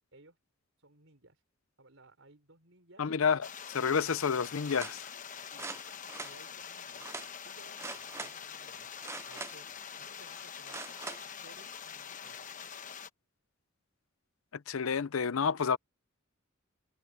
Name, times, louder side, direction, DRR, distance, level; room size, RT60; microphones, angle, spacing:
voice 1, 0.8-1.4 1.8-3.1 5.5-5.7 6.2-7.1 7.4-8.9 9.2-12.5, right 2 dB, 70° right, 4.9 m, -60 dB
voice 2, 3.0-3.4 3.7-5.1 14.7-15.8, left 6 dB, 90° left, 0.6 m, -29 dB
sound 1, 3.4-13.1, left 7 dB, 40° left, 1.0 m, -45 dB
sound 2, 4.6-5.0 5.5-6.3 7.0-7.3 7.8-8.3 9.0-9.7 10.7-11.2 11.8-11.9, right 4 dB, 15° right, 0.3 m, -43 dB
head